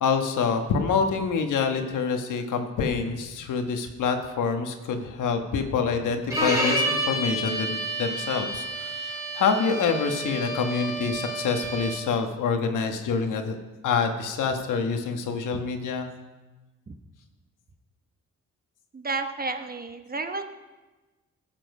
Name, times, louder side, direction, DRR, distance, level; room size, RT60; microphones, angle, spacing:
voice 1, 0.0-13.6 13.8-16.1, left 5 dB, 80° left, 5 dB, 1.3 m, -26 dB
Bowed string instrument, 6.3-12.1, right 1 dB, 10° right, 3.4 m, -29 dB
voice 2, 18.9-20.4, right 3 dB, 30° right, 7 dB, 1.0 m, -31 dB
14.5 x 7.5 x 5.4 m, 1.2 s
cardioid pair, 75°, 31 cm